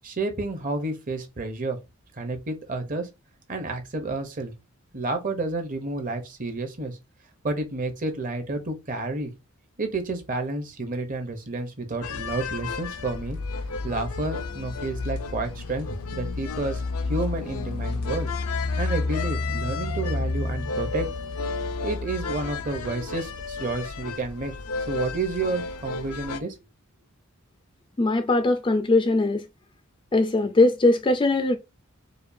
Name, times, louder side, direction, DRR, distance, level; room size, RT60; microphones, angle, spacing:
voice 1, 0.0-1.8 2.1-3.1 3.5-4.5 4.9-7.0 7.4-9.3 9.8-13.4 13.8-16.8 17.1-18.3 18.8-21.1 21.8-24.5 24.9-26.5, right 2 dB, 35° right, 0.8 m, -30 dB
sound 1, 12.0-26.4, left 3 dB, 80° left, 0.5 m, -31 dB
voice 2, 28.0-29.5 30.1-31.6, left 2 dB, 20° left, 0.4 m, -20 dB
5.0 x 2.3 x 2.6 m
head